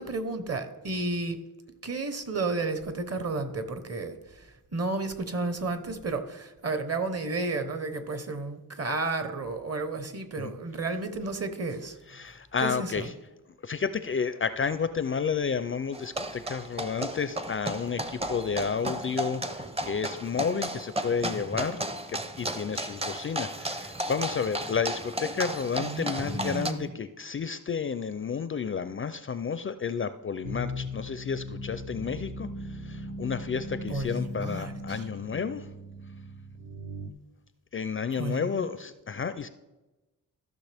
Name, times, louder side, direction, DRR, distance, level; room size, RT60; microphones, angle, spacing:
voice 1, 0.0-1.4 1.8-12.0 12.6-13.1 25.8-27.0 33.9-35.0 38.2-38.7, right 3 dB, 40° right, 1.1 m, -32 dB
voice 2, 12.1-13.1 13.6-35.7 37.7-39.5, left 6 dB, 35° left, 0.4 m, -31 dB
sound 1, 15.9-26.7, right 1 dB, 15° right, 0.6 m, -34 dB
sound 2, 30.4-37.1, left 1 dB, 65° right, 1.0 m, -39 dB
14.5 x 6.0 x 3.4 m
cardioid pair, 95°, 37 cm